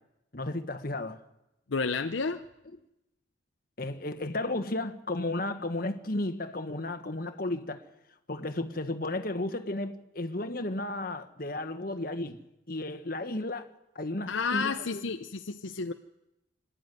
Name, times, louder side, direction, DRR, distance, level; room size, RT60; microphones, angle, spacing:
voice 1, 0.3-1.2 3.8-7.9 8.3-12.4 12.7-15.1, left 2 dB, 45° left, 1.4 m, -33 dB
voice 2, 1.7-2.4 14.3-15.9, left 4 dB, 75° left, 0.7 m, -31 dB
26.0 x 11.5 x 9.3 m
head